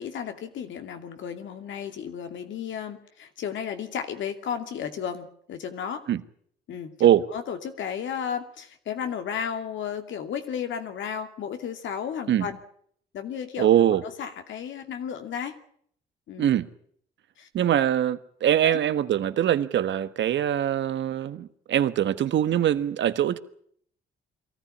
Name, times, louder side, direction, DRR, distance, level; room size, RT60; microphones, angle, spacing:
voice 1, 0.0-6.0 6.7-12.6 13.1-13.7 14.0-15.6 16.3-16.5 17.4-17.5 18.6-18.8, left 8 dB, 75° left, 2.6 m, -33 dB
voice 2, 13.6-14.0 16.4-16.7 17.5-23.4, right 11 dB, 70° right, 1.4 m, -23 dB
23.0 x 14.5 x 9.9 m
cardioid pair, 90°, 20 cm